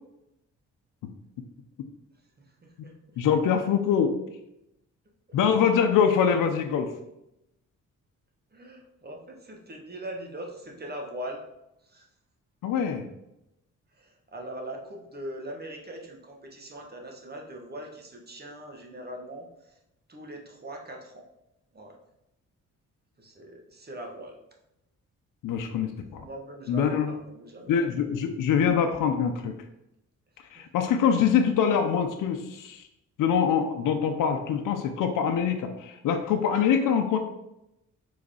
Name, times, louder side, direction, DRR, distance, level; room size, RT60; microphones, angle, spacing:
voice 1, 2.6-3.2 5.3-5.4 8.5-11.4 11.8-12.1 13.9-19.8 20.1-21.3 21.7-22.0 23.2-24.4 26.2-27.7 30.5-30.7, right 1 dB, 30° right, 1 dB, 1.3 m, -41 dB
voice 2, 3.2-4.1 5.3-6.9 12.6-13.0 25.4-26.3 26.7-27.1 27.7-29.5 30.5-32.9 33.2-37.2, left 7 dB, 90° left, 5 dB, 0.7 m, -24 dB
4.9 x 4.1 x 4.8 m, 0.86 s
cardioid pair, 100°, 31 cm